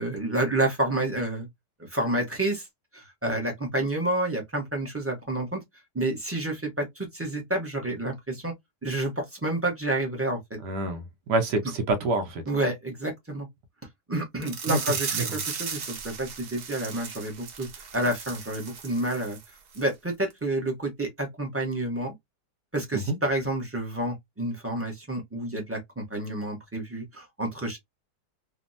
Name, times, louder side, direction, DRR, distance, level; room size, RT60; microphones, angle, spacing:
voice 1, 0.0-1.5 1.8-2.7 2.9-5.6 5.9-8.5 8.8-10.6 12.5-13.5 14.1-17.7 17.9-19.4 19.7-22.1 22.7-27.8, right 1 dB, 20° right, 0.4 m, -29 dB
voice 2, 10.6-11.0 11.3-12.4 14.7-14.8 15.1-15.3 22.9-23.2, right 2 dB, 90° right, 1.4 m, -26 dB
sound 1, 14.4-19.4 19.7-19.9 20.3-20.4, right 6 dB, 70° right, 1.4 m, -36 dB
3.3 x 2.0 x 2.5 m
omnidirectional pair, 1.8 m